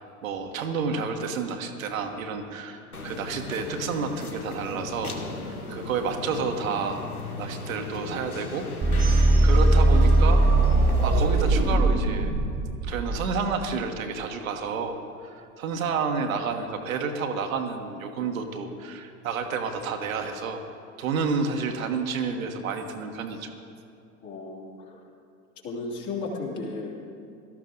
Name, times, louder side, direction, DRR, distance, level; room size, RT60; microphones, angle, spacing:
voice 1, 0.2-7.0 7.4-10.4 11.0-12.3 12.8-20.6 21.0-23.5, right 5 dB, 65° right, 4 dB, 1.4 m, -30 dB
sound 1, 2.9-11.8, left 3 dB, 85° left, 1.2 m, -36 dB
sound 2, 8.8-13.7, right 2 dB, 20° right, 1.4 m, -20 dB
voice 2, 24.2-25.0 25.6-26.9, left 3 dB, 40° left, -2 dB, 3.1 m, -34 dB
18.0 x 13.0 x 3.9 m, 2.7 s
figure-of-eight pair, 80°, 43 cm